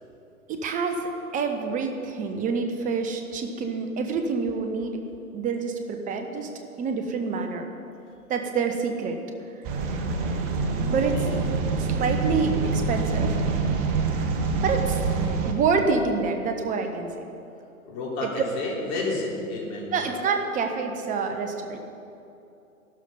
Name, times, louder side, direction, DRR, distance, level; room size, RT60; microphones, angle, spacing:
voice 1, 0.5-5.0 5.3-6.5 6.8-7.7 8.3-9.2 10.9-11.3 11.8-13.4 14.6-15.1 15.4-17.3 18.2-18.3 19.9-21.8, right 5 dB, 20° right, 5 dB, 1.2 m, -27 dB
sound 1, 9.6-15.5, right 4 dB, 35° right, 1.5 m, -26 dB
voice 2, 10.9-11.3 11.6-11.8 17.9-20.2, left 2 dB, 35° left, -3 dB, 3.8 m, -31 dB
13.5 x 12.5 x 5.6 m, 2.7 s
hypercardioid pair, 125°, 43 cm